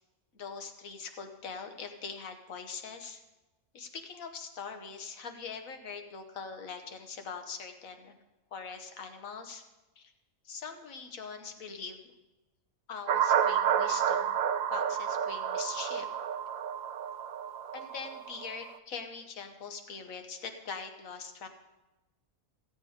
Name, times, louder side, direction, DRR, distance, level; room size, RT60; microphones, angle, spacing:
voice 1, 0.3-3.2 3.7-8.1 8.5-9.6 10.0-10.1 10.4-12.0 12.9-14.4 14.7-16.1 17.7-21.5, left 5 dB, 85° left, 6 dB, 1.5 m, -42 dB
sound 1, 13.1-18.7, right 8 dB, 90° right, 1.0 m, -30 dB
15.0 x 8.2 x 5.0 m, 1.1 s
omnidirectional pair, 1.4 m